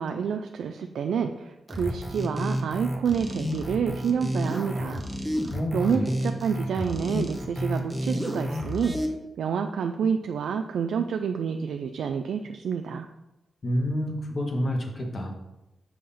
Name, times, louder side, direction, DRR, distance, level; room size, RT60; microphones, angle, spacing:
voice 1, 0.0-5.0 5.7-8.9 9.4-13.1, right 6 dB, 90° right, 5 dB, 0.3 m, -28 dB
sound 1, 1.7-9.1, equal, 5° right, 0.9 m, -30 dB
voice 2, 5.5-6.2 13.6-15.3, equal, 40° left, 1 dB, 1.2 m, -28 dB
7.0 x 2.8 x 5.5 m, 0.96 s
cardioid pair, 100°, 0 cm